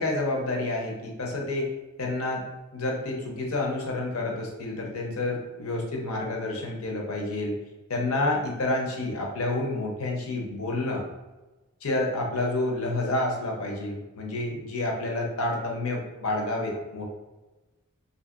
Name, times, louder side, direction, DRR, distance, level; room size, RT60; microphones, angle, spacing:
voice 1, 0.0-1.7 2.0-2.4 2.7-7.6 7.9-11.0 11.8-17.1, left 2 dB, 70° left, 0 dB, 0.7 m, -29 dB
2.9 x 2.6 x 2.4 m, 1.1 s
head